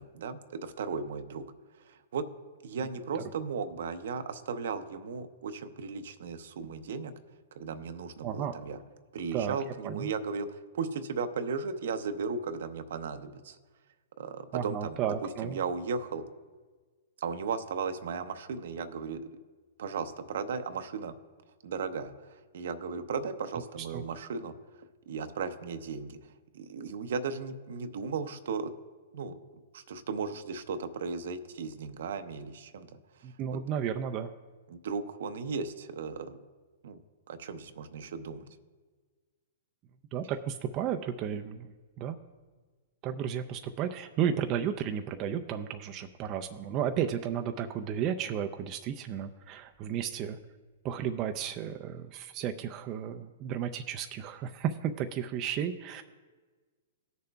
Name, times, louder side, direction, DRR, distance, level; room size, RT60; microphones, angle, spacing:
voice 1, 0.0-1.5 1.8-2.3 2.6-7.1 7.5-8.8 9.1-13.6 14.2-16.2 17.2-19.3 19.8-21.1 21.6-28.7 29.1-29.4 29.7-33.6 34.7-36.4 36.8-37.0 37.3-38.5, right 5 dB, 70° right, 9 dB, 0.7 m, -36 dB
voice 2, 8.2-8.5 9.3-9.6 9.8-10.1 14.5-15.6 23.9-24.0 33.2-34.3 40.1-41.7 42.0-42.2 43.0-50.4 50.8-56.0, right 9 dB, 35° right, 6 dB, 0.5 m, -33 dB
18.5 x 6.7 x 2.3 m, 1.4 s
hypercardioid pair, 120°, 0 cm